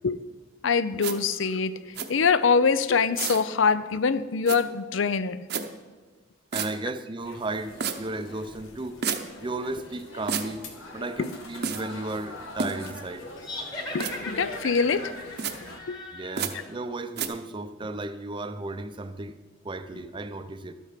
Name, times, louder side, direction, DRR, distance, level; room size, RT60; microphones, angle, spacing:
voice 1, 0.6-5.4 11.2-11.4 13.9-15.1 15.9-16.0 16.5-16.6, left 5 dB, 70° left, 15 dB, 0.5 m, -24 dB
sound 1, 1.0-1.1 1.9-2.1 3.1-3.4 4.5-4.6 5.5-5.6 6.5-6.7 7.8-8.0 9.0-9.2 10.3-10.5 11.6-11.8 12.6-12.9 14.0-14.1 15.4-15.5 16.4-16.5 17.2-17.3, right 6 dB, 55° right, 0.8 m, -29 dB
voice 2, 6.5-9.0 9.4-13.3 16.1-19.4 19.6-20.7, right 2 dB, 25° right, 10 dB, 0.6 m, -34 dB
sound 2, 7.2-15.8, left 2 dB, 90° left, 1.6 m, -44 dB
sound 3, 13.4-16.8, left 1 dB, 20° left, 1.5 m, -38 dB
12.0 x 8.2 x 5.8 m, 1.4 s
head